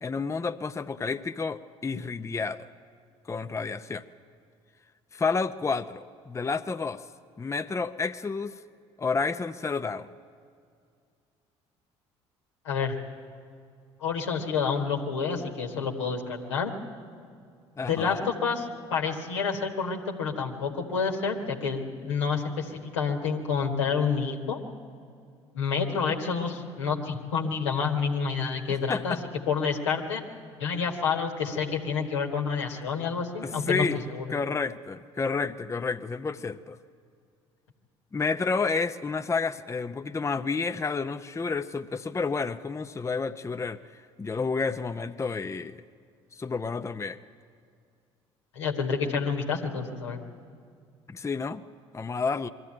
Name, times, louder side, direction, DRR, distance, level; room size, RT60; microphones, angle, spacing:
voice 1, 0.0-2.6 3.3-4.0 5.1-7.0 7.4-8.5 9.0-10.1 17.8-18.3 28.9-29.2 33.4-34.0 34.3-36.8 38.1-43.8 44.2-45.8 46.4-47.2 51.1-51.6 51.9-52.5, left 4 dB, 20° left, 9 dB, 0.6 m, -30 dB
voice 2, 12.6-13.0 14.0-16.7 17.9-24.6 25.5-29.2 29.5-30.2 30.6-34.3 48.5-50.2, left 5 dB, 85° left, 1 dB, 1.5 m, -29 dB
22.0 x 14.0 x 8.7 m, 2.3 s
hypercardioid pair, 55°, 15 cm